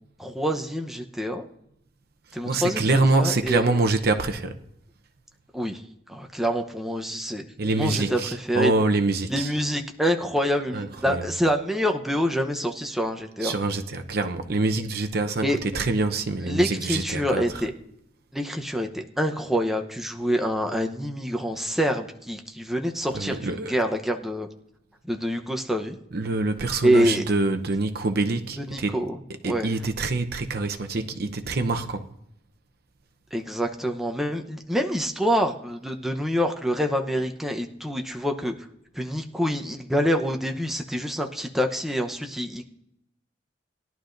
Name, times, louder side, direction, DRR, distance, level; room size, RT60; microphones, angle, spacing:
voice 1, 0.2-1.4 2.3-3.7 5.5-5.8 6.1-7.4 7.8-8.7 9.3-13.5 15.4-15.6 16.4-17.7 18.3-24.5 25.1-26.0 26.8-27.2 28.6-29.2 29.4-29.7 33.3-38.5 38.9-42.6, equal, ahead, 0.8 m, -26 dB
voice 2, 2.4-4.6 7.6-9.5 10.7-11.3 13.4-17.6 23.1-23.7 26.1-29.0 29.4-32.1, right 2 dB, 55° right, 0.8 m, -25 dB
20.0 x 11.5 x 2.6 m
head